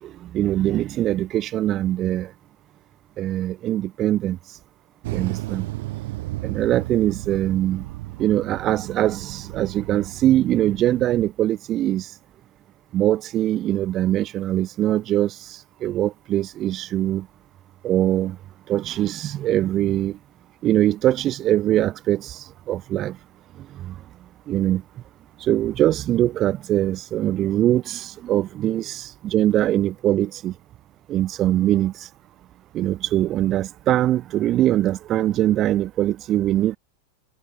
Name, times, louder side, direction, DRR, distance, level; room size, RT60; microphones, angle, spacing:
voice 1, 0.0-2.3 3.2-4.4 5.1-5.7 6.4-7.9 8.2-12.1 12.9-17.3 17.8-18.4 18.7-20.2 20.6-23.2 23.6-23.9 24.5-24.8 25.4-30.5 31.1-32.1 32.7-36.8, right 13 dB, 30° right, 2.7 m, -22 dB
sound 1, 5.0-11.3, right 19 dB, 50° right, 4.9 m, -34 dB
figure-of-eight pair, 90°, 0 cm